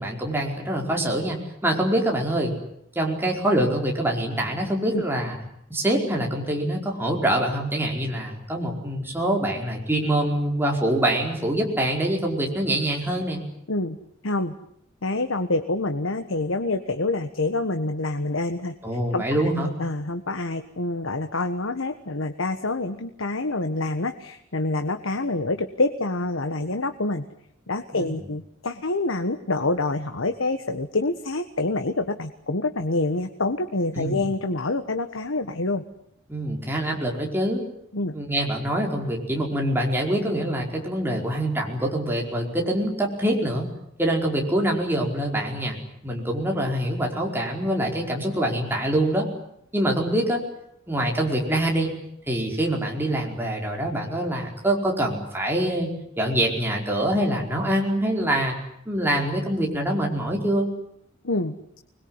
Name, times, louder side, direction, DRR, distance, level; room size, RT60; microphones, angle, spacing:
voice 1, 0.0-2.5 2.9-5.4 5.7-13.4 18.8-19.7 27.9-28.1 33.9-34.2 36.3-37.6 38.1-43.7 44.0-45.8 46.0-49.3 49.7-50.4 50.9-51.9 52.3-55.9 56.2-58.6 58.8-60.7, right 1 dB, 10° right, 0 dB, 5.0 m, -25 dB
voice 2, 14.2-14.5 15.0-18.7 19.1-27.2 27.7-35.8 37.9-38.1 61.2-61.6, left 2 dB, 90° left, 8 dB, 1.4 m, -27 dB
25.5 x 21.0 x 9.8 m, 0.75 s
head